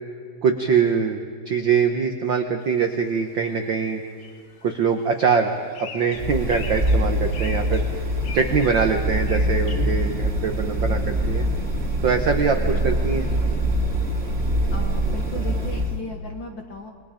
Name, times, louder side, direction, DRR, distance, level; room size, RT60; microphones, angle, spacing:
voice 1, 0.4-4.0 4.6-5.5 5.8-7.9 8.3-11.4 12.0-13.3, right 6 dB, 70° right, 5 dB, 1.1 m, -23 dB
sound 1, 2.6-2.7 3.0-9.8, left 6 dB, 75° left, 3.2 m, -42 dB
sound 2, 6.1-16.0, right 1 dB, 20° right, 2.3 m, -24 dB
voice 2, 14.7-16.9, left 2 dB, 50° left, 3 dB, 1.5 m, -36 dB
29.0 x 21.5 x 5.1 m, 2.3 s
omnidirectional pair, 3.7 m